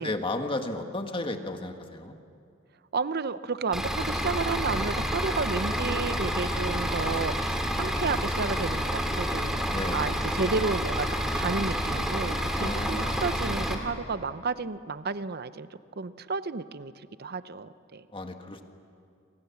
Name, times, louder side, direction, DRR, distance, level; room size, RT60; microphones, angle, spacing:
voice 1, 0.0-2.1 5.8-6.4 9.7-10.0 12.6-13.3 18.1-18.6, left 2 dB, 25° left, 5 dB, 1.8 m, -34 dB
voice 2, 2.9-11.1 11.3-15.7 16.0-16.9 17.2-18.1, right 4 dB, 50° right, 14 dB, 0.7 m, -32 dB
Bus / Idling, 3.7-13.7, equal, 5° right, 2.5 m, -29 dB
29.0 x 25.0 x 7.1 m, 2.4 s
head